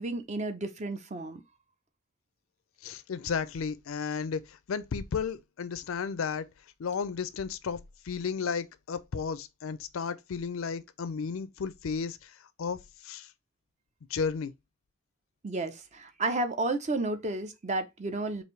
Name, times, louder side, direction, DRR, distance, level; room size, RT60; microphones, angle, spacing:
voice 1, 0.0-1.4 15.4-18.4, right 2 dB, 35° right, 0.6 m, -32 dB
voice 2, 2.8-6.5 6.8-12.3 12.6-13.3 14.1-14.5, left 6 dB, 70° left, 0.4 m, -33 dB
4.8 x 2.6 x 3.1 m
head